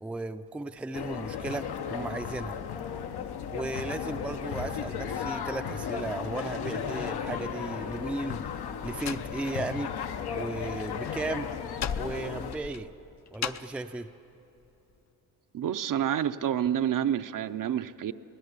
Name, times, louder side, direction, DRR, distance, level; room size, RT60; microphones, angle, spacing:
voice 1, 0.0-2.6 3.5-8.5 8.8-10.0 10.3-11.5 12.0-12.9 13.3-14.1, right 2 dB, 5° right, 8 dB, 0.4 m, -35 dB
sound 1, 0.9-12.6, left 7 dB, 85° left, 1.1 m, -35 dB
Slam, 8.3-10.1 10.3-13.8, left 8 dB, 45° left, 0.6 m, -38 dB
voice 2, 15.5-18.1, right 10 dB, 55° right, 11 dB, 0.6 m, -28 dB
23.0 x 17.0 x 8.2 m, 3.0 s
wide cardioid pair, 130°, 38 cm